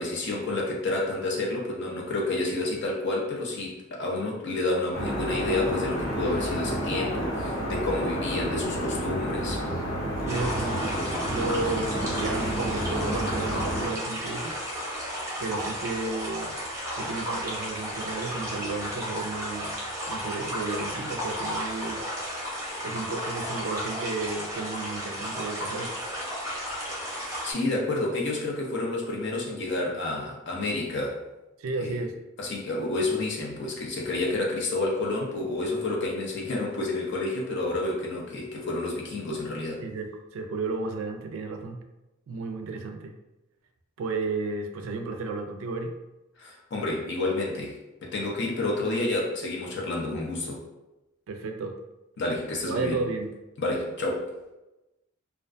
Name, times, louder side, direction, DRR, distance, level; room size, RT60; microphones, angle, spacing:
voice 1, 0.0-9.6 27.2-31.2 31.8-32.0 32.4-39.9 46.4-47.8 48.0-50.6 52.2-53.0 53.6-54.3, left 2 dB, 55° left, -2 dB, 0.6 m, -29 dB
sound 1, 4.9-13.9, equal, 80° left, 1.3 m, -30 dB
voice 2, 10.2-14.6 15.4-16.6 17.0-19.8 20.1-22.0 22.8-25.9 31.6-32.1 39.8-41.8 42.3-43.2 44.0-46.0 51.3-51.8 52.6-53.3, right 3 dB, 75° right, 4 dB, 0.3 m, -33 dB
sound 2, 10.3-27.5, equal, 15° right, 0.7 m, -34 dB
2.3 x 2.2 x 2.5 m, 0.99 s
head